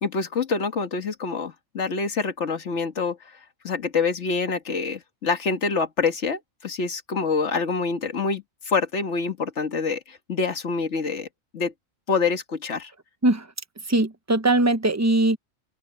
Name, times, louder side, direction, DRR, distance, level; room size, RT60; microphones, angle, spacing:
voice 1, 0.0-3.2 3.6-11.3 11.5-11.7 12.1-12.9, left 4 dB, 60° left, 1.9 m, -26 dB
voice 2, 13.9-15.4, right 2 dB, 15° right, 0.7 m, -20 dB
open air
omnidirectional pair, 1.4 m